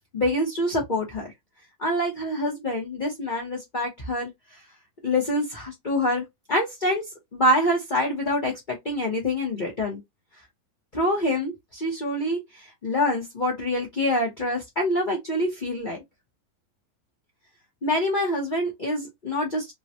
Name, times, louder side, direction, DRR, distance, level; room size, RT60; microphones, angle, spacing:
voice 1, 0.1-1.3 1.8-4.6 5.0-10.0 10.9-16.0 17.8-19.7, left 1 dB, 40° left, 0.6 m, -26 dB
3.7 x 2.2 x 2.8 m
omnidirectional pair, 2.2 m